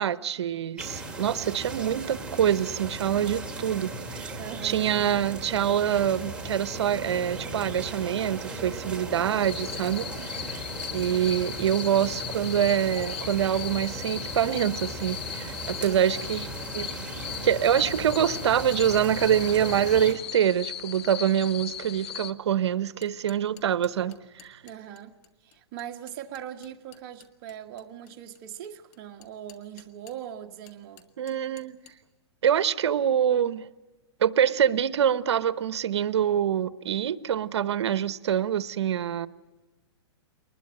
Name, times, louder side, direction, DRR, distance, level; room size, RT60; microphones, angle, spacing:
voice 1, 0.0-3.9 4.2-4.3 4.6-10.5 10.9-16.5 16.7-16.9 17.4-24.6 31.2-31.8 32.4-33.7 34.2-39.3, right 9 dB, 75° right, 1.0 m, -25 dB
sound 1, 0.8-20.1, right 2 dB, 5° right, 2.3 m, -37 dB
voice 2, 4.4-4.9 15.8-16.3 24.6-25.1 25.4-31.0, right 10 dB, 40° right, 1.6 m, -41 dB
sound 2, 9.4-22.3, left 10 dB, 65° left, 1.1 m, -38 dB
sound 3, 22.8-30.3 30.7-32.0, left 10 dB, 35° left, 1.9 m, -54 dB
23.0 x 20.5 x 7.7 m
hypercardioid pair, 150°, 15 cm